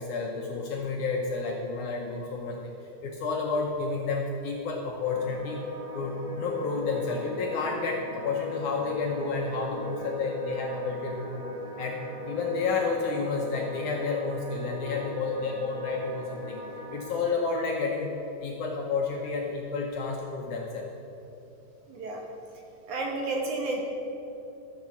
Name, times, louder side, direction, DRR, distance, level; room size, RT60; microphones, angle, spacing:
voice 1, 0.0-2.7 3.0-5.6 5.9-11.4 11.8-12.0 12.2-16.6 16.9-18.1 18.4-20.9, left 4 dB, 70° left, 0 dB, 2.0 m, -30 dB
sound 1, 5.0-17.0, left 1 dB, 35° right, 2.2 m, -40 dB
voice 2, 21.9-22.2 22.9-23.8, right 2 dB, 65° right, 0 dB, 2.2 m, -31 dB
14.0 x 6.6 x 7.1 m, 3.0 s
omnidirectional pair, 4.4 m